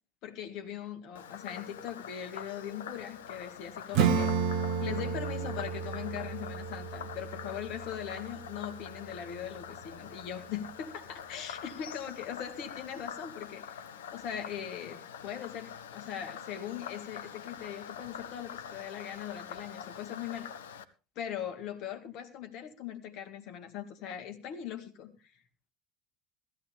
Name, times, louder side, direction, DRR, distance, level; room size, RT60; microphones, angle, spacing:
voice 1, 0.2-4.3 4.8-13.8 14.1-20.5 21.2-25.3, left 9 dB, 50° left, 6 dB, 1.9 m, -40 dB
Frog, 1.2-20.8, left 8 dB, 70° left, 0.8 m, -45 dB
Acoustic guitar / Strum, 3.9-9.2, right 6 dB, 55° right, 1.4 m, -32 dB
16.0 x 14.0 x 3.4 m, 0.32 s
figure-of-eight pair, 70°, 0 cm